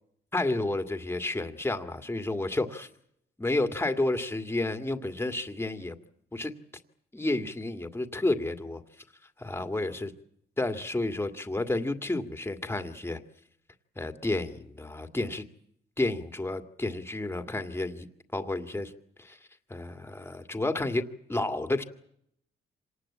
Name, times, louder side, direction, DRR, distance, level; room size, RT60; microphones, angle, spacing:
voice 1, 0.3-2.9 3.4-6.0 6.3-6.5 7.1-8.8 9.4-10.1 10.6-13.2 14.0-15.4 16.0-18.1 18.3-18.9 19.2-19.4 19.7-21.0 21.3-21.8, left 2 dB, 10° left, 7 dB, 2.1 m, -30 dB
26.0 x 19.0 x 8.6 m, 0.72 s
cardioid pair, 90°, 20 cm